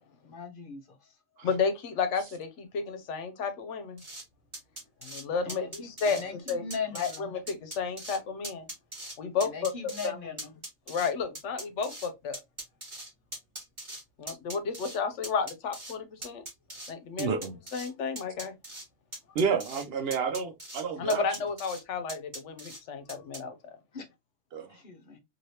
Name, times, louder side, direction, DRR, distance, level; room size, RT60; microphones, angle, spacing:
voice 1, 0.2-0.8 5.5-6.3 6.6-7.3 9.4-10.5 23.9-24.1 24.7-25.2, left 5 dB, 50° left, 0.8 m, -38 dB
voice 2, 1.4-4.0 5.0-6.7 6.9-8.7 9.2-10.2 10.9-12.4 14.2-16.4 16.9-17.4 17.7-18.5 21.0-23.7, left 5 dB, 80° left, 1.0 m, -32 dB
sound 1, 4.0-4.2 4.5-5.2 5.5-6.2 6.5-7.2 7.5-8.2 8.4-9.2 9.4-10.1 10.4-12.1 12.3-14.0 14.3-15.0 15.2-16.0 16.2-16.9 17.2-17.9 18.2-18.8 19.1-19.9 20.1-20.8 21.1-21.8 22.1-22.8 23.1-23.4, right 1 dB, 25° right, 1.4 m, -41 dB
voice 3, 17.2-17.6 19.3-21.2 24.5-24.7, right 5 dB, 65° right, 0.8 m, -30 dB
3.2 x 2.7 x 2.7 m
omnidirectional pair, 1.2 m